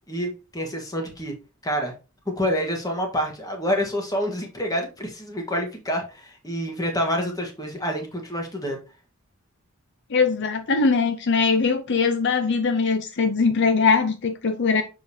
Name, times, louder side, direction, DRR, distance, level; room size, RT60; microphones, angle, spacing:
voice 1, 0.1-1.3 1.6-1.9 2.2-8.8, equal, 15° left, 1.5 m, -27 dB
voice 2, 10.1-14.8, left 4 dB, 55° left, 0.6 m, -21 dB
6.8 x 5.2 x 2.8 m
head